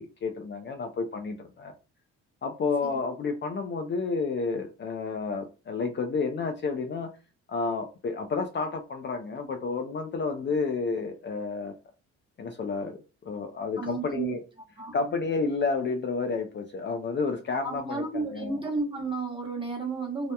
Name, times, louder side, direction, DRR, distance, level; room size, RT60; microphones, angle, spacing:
voice 1, 0.0-1.7 2.4-7.1 7.5-11.7 12.4-14.4 14.9-18.6, left 4 dB, 40° left, 4 dB, 0.4 m, -30 dB
voice 2, 13.8-14.4 14.8-14.9 17.6-20.3, right 3 dB, 15° right, 0 dB, 1.0 m, -32 dB
2.8 x 2.0 x 2.2 m, 0.32 s
cardioid pair, 90°, 30 cm